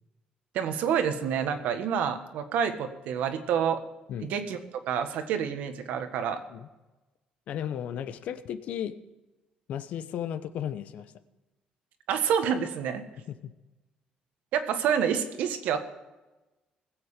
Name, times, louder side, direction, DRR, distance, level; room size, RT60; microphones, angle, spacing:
voice 1, 0.5-3.8 4.2-4.6 4.9-6.4 12.1-13.1 14.5-15.8, right 8 dB, 80° right, 8 dB, 1.6 m, -28 dB
voice 2, 7.5-9.0 9.7-11.1 13.3-13.5, left 9 dB, 60° left, 11 dB, 0.9 m, -35 dB
20.0 x 8.2 x 5.1 m, 1.1 s
cardioid pair, 155°, 3 cm